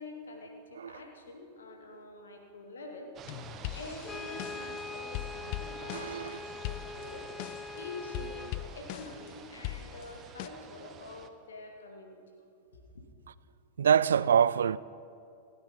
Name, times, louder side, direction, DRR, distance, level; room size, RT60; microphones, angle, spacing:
voice 1, 0.0-3.2 3.7-7.3 7.7-12.4 12.7-13.0, left 2 dB, 70° left, 2.2 m, -46 dB
sound 1, 3.2-11.3, right 8 dB, 30° right, 0.9 m, -49 dB
sound 2, 3.3-4.8 5.1-6.3 6.6-7.8 8.1-9.3 9.6-10.5, left 16 dB, 45° left, 0.4 m, -40 dB
Brass instrument, 4.0-8.6, left 5 dB, 20° left, 0.7 m, -43 dB
voice 2, 5.9-6.4 13.8-14.8, right 8 dB, 65° right, 0.3 m, -25 dB
28.0 x 9.5 x 5.3 m
figure-of-eight pair, 90°, 0 cm